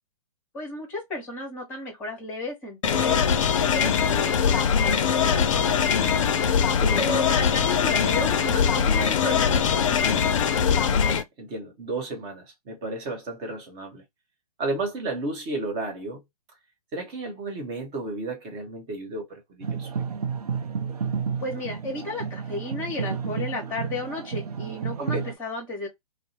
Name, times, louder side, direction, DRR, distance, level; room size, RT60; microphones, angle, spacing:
voice 1, 0.5-6.1 7.0-10.2 21.4-25.9, left 2 dB, 10° left, 1.1 m, -33 dB
sound 1, 2.8-11.2, left 7 dB, 55° left, 0.4 m, -22 dB
voice 2, 6.7-7.1 10.9-14.0 14.6-16.2 16.9-20.0 25.0-25.2, right 2 dB, 25° right, 0.9 m, -33 dB
sound 2, 19.6-25.4, right 6 dB, 70° right, 0.5 m, -31 dB
2.6 x 2.0 x 2.7 m
figure-of-eight pair, 120°, 20 cm